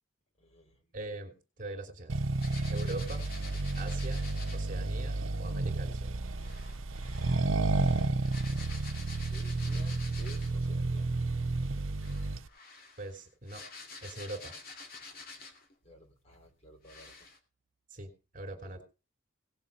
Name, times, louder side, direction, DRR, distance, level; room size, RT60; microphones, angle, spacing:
voice 1, 0.4-0.9 9.3-11.1 15.8-17.3 18.7-18.8, left 1 dB, 35° left, 2 dB, 3.6 m, -54 dB
voice 2, 0.9-2.2 2.7-3.3 3.8-4.2 4.5-6.1 13.0-13.6 14.0-14.5 17.9-18.8, right 2 dB, 40° right, 5 dB, 3.0 m, -42 dB
Accelerating revving vroom, 2.1-12.5, right 3 dB, 80° right, 0.8 m, -31 dB
sound 1, 2.4-4.7 6.4-10.7 11.9-15.7 16.3-16.4 16.8-17.4, left 4 dB, 50° left, 2.5 m, -49 dB
17.5 x 7.1 x 5.4 m, 0.33 s
head